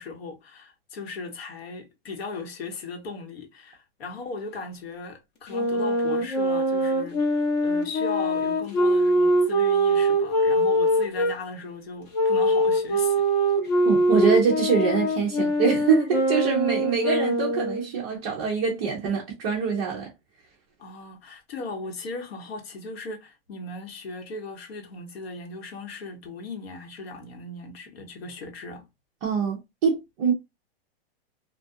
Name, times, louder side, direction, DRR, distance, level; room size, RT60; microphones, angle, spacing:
voice 1, 0.0-7.2 7.6-13.3 20.8-28.9, left 3 dB, 75° left, 1.1 m, -37 dB
Wind instrument woodwind instrument, 5.5-11.3 12.1-17.9, right 1 dB, 45° left, 0.8 m, -23 dB
voice 2, 13.8-20.1 29.2-30.3, right 6 dB, 20° right, 0.4 m, -24 dB
2.3 x 2.2 x 2.5 m
hypercardioid pair, 160°, 31 cm